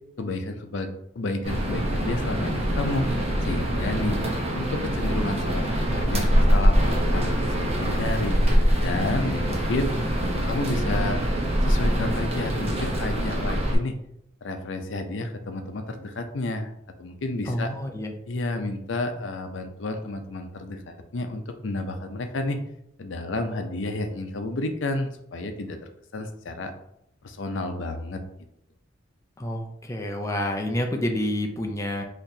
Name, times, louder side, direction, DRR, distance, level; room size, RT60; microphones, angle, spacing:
voice 1, 0.2-3.1 3.4-4.2 4.5-8.4 8.8-9.9 10.3-11.2 11.6-13.9 14.4-16.7 17.0-17.7 18.3-22.6 23.0-26.7 27.2-28.2, left 2 dB, 80° left, 6 dB, 0.5 m, -31 dB
sound 1, 1.4-13.7, equal, 35° right, 0.8 m, -24 dB
voice 2, 17.5-18.1 29.4-32.0, left 1 dB, 15° left, 3 dB, 0.4 m, -28 dB
4.1 x 3.0 x 2.7 m, 0.74 s
head